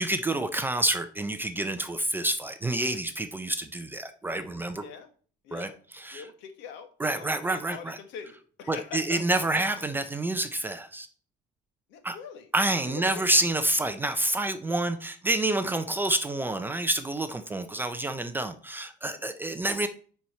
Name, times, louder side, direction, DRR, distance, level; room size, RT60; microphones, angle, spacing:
voice 1, 0.0-4.8 5.5-5.7 6.0-6.2 7.0-8.0 8.7-11.1 12.0-12.2 12.5-19.9, right 2 dB, 10° right, 9 dB, 0.4 m, -28 dB
voice 2, 4.8-5.1 5.4-5.8 6.1-9.2 11.9-12.5 12.8-13.4 19.1-19.5, left 7 dB, 75° left, 8 dB, 1.4 m, -43 dB
10.0 x 4.5 x 4.1 m, 0.44 s
cardioid pair, 175°, 19 cm